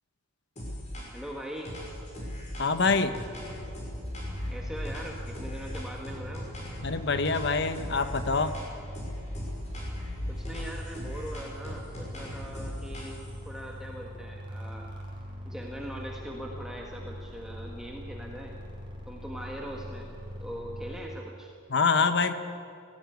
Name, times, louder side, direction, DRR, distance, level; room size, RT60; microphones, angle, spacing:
sound 1, 0.6-1.3 1.6-6.9 7.2-8.7 8.9-13.4, equal, 35° left, 5.8 m, -38 dB
voice 1, 1.1-1.8 4.5-6.5 10.3-13.2 13.4-14.9 15.4-18.6 19.1-20.1 20.4-21.5, equal, 5° right, -1 dB, 1.6 m, -41 dB
voice 2, 2.6-3.1 6.8-8.6 21.7-22.3, left 4 dB, 55° left, 10 dB, 1.0 m, -25 dB
sound 2, 4.2-21.0, equal, 25° right, 3.9 m, -42 dB
17.5 x 16.0 x 9.4 m, 2.5 s
head